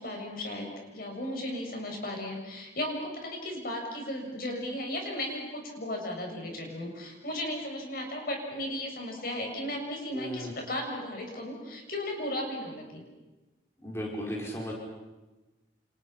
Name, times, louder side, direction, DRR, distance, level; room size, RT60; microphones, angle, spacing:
voice 1, 0.0-13.0, left 1 dB, 55° left, 1 dB, 7.2 m, -35 dB
voice 2, 10.1-10.5 13.8-14.7, equal, 15° left, -3 dB, 5.6 m, -35 dB
30.0 x 29.5 x 5.9 m, 1.1 s
head